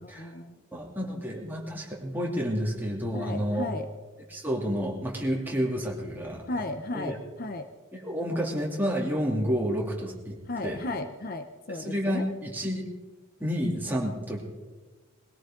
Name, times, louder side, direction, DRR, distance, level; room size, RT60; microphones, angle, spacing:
voice 1, 0.0-0.6 3.1-3.9 6.5-7.7 10.5-12.3, left 2 dB, 45° left, 8 dB, 0.8 m, -35 dB
voice 2, 0.7-3.7 4.3-6.4 6.9-7.2 7.9-10.4 10.6-10.8 11.7-12.9 13.4-14.4, equal, 10° right, -2 dB, 2.8 m, -30 dB
22.0 x 17.0 x 3.8 m, 1.3 s
head